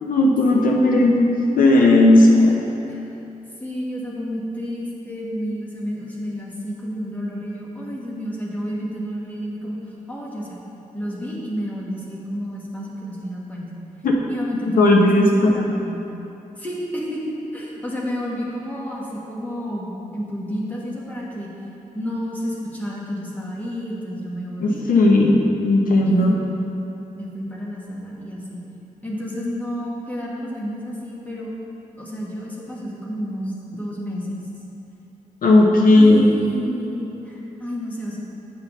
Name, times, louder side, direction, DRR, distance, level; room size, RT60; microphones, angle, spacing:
voice 1, 0.0-2.5 14.0-14.2 14.8-15.5 24.6-26.3 35.4-36.3, left 2 dB, 85° left, 0 dB, 0.7 m, -15 dB
voice 2, 2.3-3.1 3.6-9.8 10.1-10.6 10.9-13.7 14.3-16.1 16.6-21.5 21.9-24.8 26.1-26.6 27.1-28.6 29.0-31.5 32.0-34.4 36.0-38.2, equal, 10° left, -5 dB, 1.2 m, -30 dB
9.4 x 5.7 x 3.0 m, 2.9 s
wide cardioid pair, 140°, 14 cm